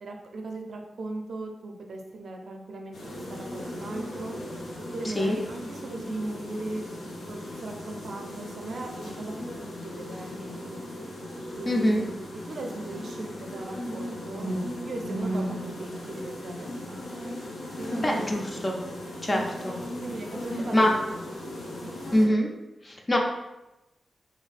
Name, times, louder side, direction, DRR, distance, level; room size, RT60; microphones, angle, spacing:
voice 1, 0.0-4.4 4.9-6.8 7.3-9.4 9.8-10.8 11.6-14.5 14.9-17.0 17.8-18.4 19.3-19.5 20.0-21.1 21.8-21.9, right 2 dB, 60° right, 2 dB, 0.5 m, -38 dB
sound 1, 2.9-22.3, equal, 80° left, 0.7 m, -37 dB
voice 2, 5.0-5.4 11.6-12.0 18.0-18.8 19.2-19.8 20.7-20.9 22.1-22.5 22.8-23.2, left 1 dB, 25° left, 1 dB, 0.4 m, -24 dB
3.2 x 2.7 x 3.2 m, 0.97 s
wide cardioid pair, 160°, 0 cm